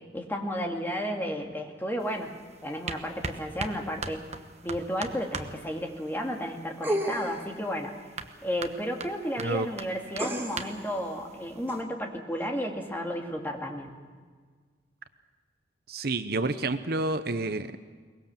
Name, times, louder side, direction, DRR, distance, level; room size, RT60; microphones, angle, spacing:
voice 1, 0.1-2.3 2.6-4.3 4.6-8.0 8.4-13.9, equal, 10° left, 1 dB, 2.2 m, -33 dB
sound 1, 2.0-11.8, right 4 dB, 35° right, 1.2 m, -42 dB
sound 2, 6.8-7.5 10.2-10.8 11.7-11.8, right 1 dB, 10° right, 2.3 m, -31 dB
voice 2, 15.9-17.8, right 2 dB, 55° right, 10 dB, 0.8 m, -29 dB
23.0 x 20.5 x 7.3 m, 1.5 s
head